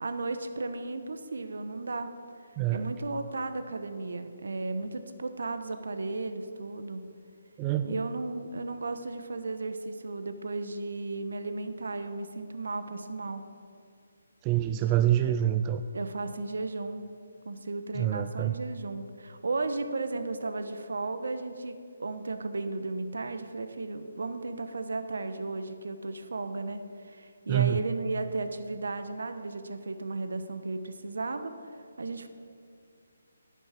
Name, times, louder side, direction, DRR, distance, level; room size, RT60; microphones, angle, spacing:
voice 1, 0.0-2.1 2.7-7.0 7.8-13.4 15.9-17.1 17.4-31.5 32.0-32.3, right 3 dB, 75° right, 9 dB, 1.0 m, -34 dB
voice 2, 7.6-8.0 14.4-15.8 17.9-18.5 27.5-27.8, right 12 dB, 20° right, 9 dB, 0.3 m, -26 dB
11.0 x 9.4 x 5.8 m, 2.3 s
hypercardioid pair, 155°, 0 cm